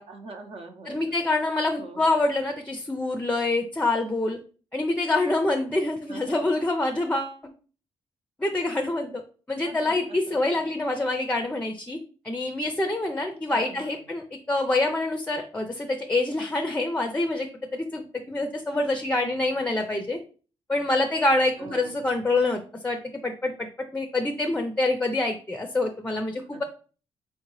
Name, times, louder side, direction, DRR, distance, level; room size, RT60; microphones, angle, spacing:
voice 1, 0.1-1.2 1.8-2.2 6.1-6.5 9.6-10.6 13.5-14.0 21.6-22.2 26.5-26.6, right 3 dB, 55° right, 4 dB, 0.7 m, -44 dB
voice 2, 0.9-4.4 4.7-7.4 8.4-9.2 9.5-12.0 12.2-20.2 20.7-23.7 23.9-26.6, left 2 dB, 15° left, 5 dB, 0.4 m, -26 dB
4.3 x 2.7 x 3.0 m, 0.39 s
cardioid pair, 90°, 12 cm